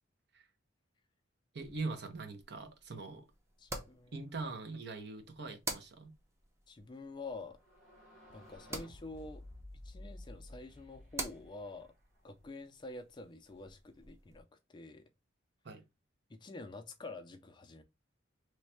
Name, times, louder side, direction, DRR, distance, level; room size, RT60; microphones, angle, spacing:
voice 1, 1.5-3.2 4.1-6.1 15.6-15.8, right 3 dB, 55° right, 0.7 m, -42 dB
sound 1, 1.6-14.4, right 1 dB, 15° right, 0.6 m, -49 dB
voice 2, 3.6-4.1 4.4-4.5 6.7-7.6 8.3-9.4 9.8-11.9 12.2-15.0 16.3-17.8, left 3 dB, 25° left, 0.4 m, -48 dB
sound 2, 7.5-12.3, left 1 dB, 75° right, 1.7 m, -53 dB
3.1 x 2.2 x 4.2 m
head